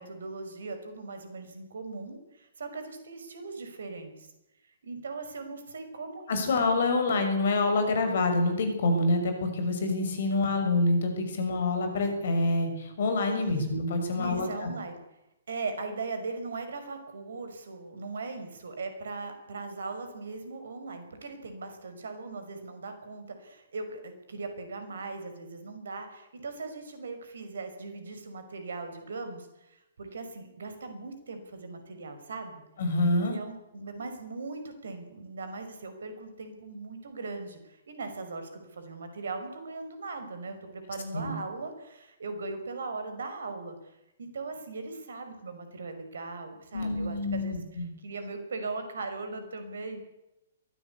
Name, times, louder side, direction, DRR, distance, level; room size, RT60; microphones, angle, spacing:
voice 1, 0.0-4.3 4.8-6.6 13.3-13.7 14.2-15.0 15.5-32.6 33.2-50.1, right 3 dB, 65° right, 8 dB, 5.6 m, -39 dB
voice 2, 6.3-14.7 32.8-33.4 41.1-41.3 46.7-47.8, left 2 dB, 60° left, 6 dB, 6.6 m, -27 dB
23.0 x 16.5 x 8.5 m, 0.90 s
figure-of-eight pair, 115°, 0 cm